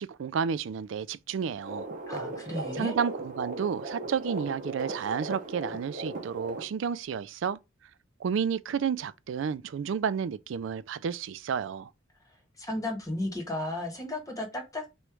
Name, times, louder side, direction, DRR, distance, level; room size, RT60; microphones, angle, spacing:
voice 1, 0.0-1.9 2.7-7.6 8.2-11.9, right 7 dB, 65° right, 0.3 m, -31 dB
sound 1, 1.6-6.7, right 2 dB, 40° right, 0.9 m, -37 dB
voice 2, 2.1-3.0 12.2-14.9, left 1 dB, 15° left, 1.1 m, -34 dB
3.1 x 3.0 x 4.7 m
head